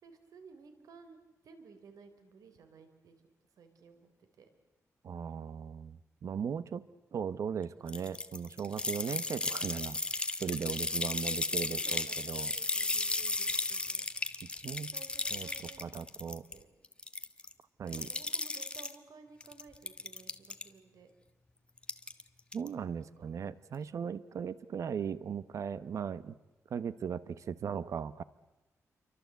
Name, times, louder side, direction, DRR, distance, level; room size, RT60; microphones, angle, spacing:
voice 1, 0.0-3.1 3.6-4.5 10.6-14.1 14.6-16.7 17.9-21.1 23.0-23.3, right 5 dB, 85° right, 8 dB, 3.8 m, -56 dB
voice 2, 5.0-10.0 10.4-12.5 14.4-14.9 15.3-15.5 15.8-16.4 17.8-18.1 22.5-26.3 26.7-28.2, right 7 dB, 60° right, 16 dB, 0.8 m, -38 dB
sound 1, 7.9-16.5 16.8-17.5 17.9-19.0 19.4-20.6 21.8-22.2 22.5-22.7, left 2 dB, 15° left, 1.3 m, -35 dB
29.0 x 24.5 x 8.1 m, 1.0 s
wide cardioid pair, 145°, 6 cm